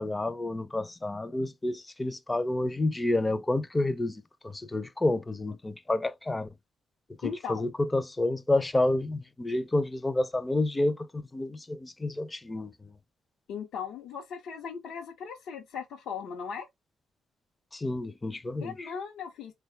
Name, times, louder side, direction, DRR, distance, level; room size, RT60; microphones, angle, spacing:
voice 1, 0.0-6.5 7.2-12.9 17.7-18.9, left 2 dB, 15° left, 0.4 m, -29 dB
voice 2, 7.2-7.7 13.5-16.7 18.6-19.5, left 7 dB, 80° left, 0.8 m, -38 dB
3.8 x 2.2 x 3.2 m
cardioid pair, 90°, 0 cm